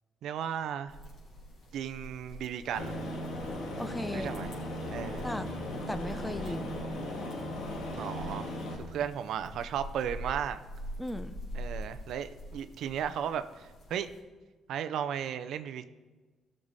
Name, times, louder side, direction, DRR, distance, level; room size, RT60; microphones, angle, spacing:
voice 1, 0.2-1.0 1.7-2.9 4.1-4.5 4.9-5.3 8.0-8.5 8.8-10.6 11.6-14.1 14.7-15.9, right 9 dB, 75° right, 10 dB, 0.6 m, -35 dB
sound 1, 0.9-14.2, equal, 65° left, 4.0 m, -45 dB
Aircraft, 2.7-8.7, left 1 dB, 85° left, 2.6 m, -37 dB
voice 2, 3.8-4.3 5.2-6.8 11.0-11.3, left 1 dB, 5° left, 12 dB, 0.6 m, -37 dB
16.0 x 6.6 x 4.1 m, 1.3 s
cardioid pair, 90°, 0 cm